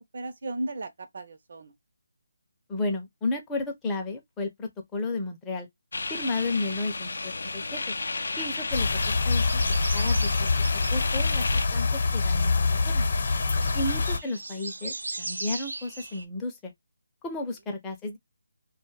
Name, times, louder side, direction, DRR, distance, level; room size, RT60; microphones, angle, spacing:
voice 1, 0.1-1.7 13.3-13.7, right 2 dB, 50° right, 0.7 m, -36 dB
voice 2, 2.7-5.7 6.1-7.8 8.4-10.5 10.9-13.0 13.7-16.7 17.2-18.2, left 2 dB, 10° left, 0.5 m, -33 dB
sound 1, 5.9-11.7, left 3 dB, 70° left, 0.5 m, -33 dB
sound 2, 7.1-16.3, right 2 dB, 85° right, 0.7 m, -40 dB
sound 3, 8.7-14.2, left 3 dB, 50° left, 0.9 m, -25 dB
2.5 x 2.3 x 3.0 m
hypercardioid pair, 170°, 0 cm